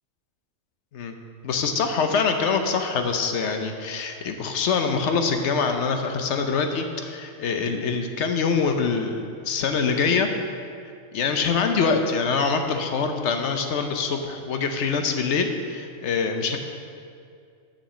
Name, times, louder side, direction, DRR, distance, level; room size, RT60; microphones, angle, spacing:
voice 1, 1.4-10.3 11.1-16.6, left 5 dB, 65° left, 5 dB, 1.0 m, -24 dB
7.1 x 5.7 x 6.9 m, 2.3 s
omnidirectional pair, 1.3 m